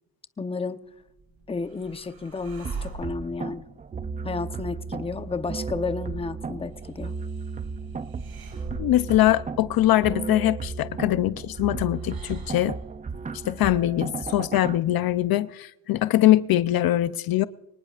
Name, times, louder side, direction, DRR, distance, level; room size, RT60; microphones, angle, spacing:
voice 1, 0.4-0.8 1.5-3.6 4.2-7.1, left 4 dB, 15° left, 0.8 m, -32 dB
sound 1, 0.9-13.0, right 3 dB, 60° right, 7.7 m, -46 dB
sound 2, 2.6-14.8, right 5 dB, 20° right, 0.5 m, -35 dB
voice 2, 8.8-12.8 13.4-17.4, left 14 dB, 60° left, 0.6 m, -22 dB
24.5 x 19.0 x 2.5 m
cardioid pair, 125°, 41 cm